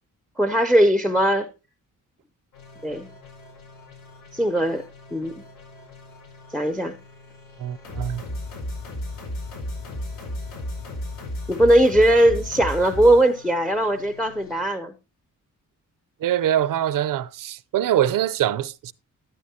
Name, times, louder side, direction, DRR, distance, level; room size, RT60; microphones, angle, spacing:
voice 1, 0.4-1.5 2.8-3.1 4.3-4.8 5.1-5.4 6.5-7.0 11.5-14.9, right 1 dB, ahead, 0.6 m, -19 dB
sound 1, 2.5-14.6, left 1 dB, 85° left, 5.1 m, -36 dB
voice 2, 7.6-8.2 16.2-18.9, right 11 dB, 80° right, 0.6 m, -23 dB
13.0 x 9.9 x 2.8 m
wide cardioid pair, 160°, 33 cm